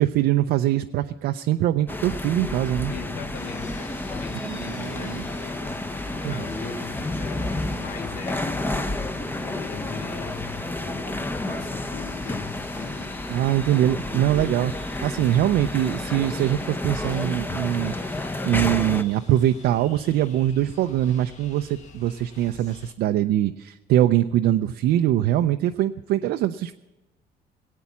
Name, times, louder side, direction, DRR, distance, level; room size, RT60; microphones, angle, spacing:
voice 1, 0.0-2.9 4.5-5.2 6.2-6.4 13.3-18.1 18.4-26.7, right 12 dB, 75° right, 6 dB, 0.5 m, -23 dB
sound 1, 1.9-19.0, left 2 dB, 10° left, 0.8 m, -30 dB
voice 2, 2.9-8.8 9.4-13.2 13.7-14.3, left 6 dB, 65° left, 8 dB, 1.4 m, -40 dB
sound 2, 3.3-22.9, left 4 dB, 45° left, 1.6 m, -48 dB
18.5 x 8.5 x 7.1 m, 1.0 s
cardioid pair, 110°, 17 cm